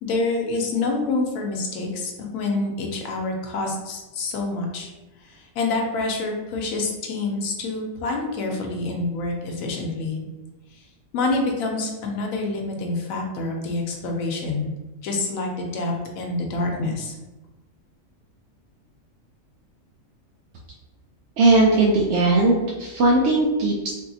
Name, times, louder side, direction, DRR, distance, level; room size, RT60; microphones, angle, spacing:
voice 1, 0.0-4.9 5.2-10.2 10.8-10.9 11.1-14.7 15.0-17.1, left 3 dB, 90° left, 1 dB, 1.0 m, -27 dB
voice 2, 21.4-23.9, right 2 dB, 65° right, -3 dB, 0.8 m, -18 dB
3.5 x 2.7 x 2.6 m, 1.1 s
omnidirectional pair, 1.4 m